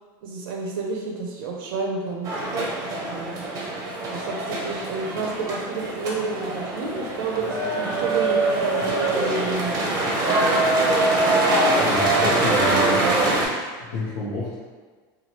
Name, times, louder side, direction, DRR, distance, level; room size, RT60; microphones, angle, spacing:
voice 1, 0.2-2.3 3.1-3.4 4.1-9.9 10.2-10.7, right 3 dB, 85° right, -1 dB, 0.5 m, -30 dB
sound 1, 2.2-13.5, right 2 dB, 30° right, 0.6 m, -23 dB
voice 2, 11.8-13.1 13.4-14.6, left 2 dB, 85° left, -9 dB, 0.7 m, -30 dB
3.1 x 2.3 x 2.8 m, 1.4 s
supercardioid pair, 155°, 12 cm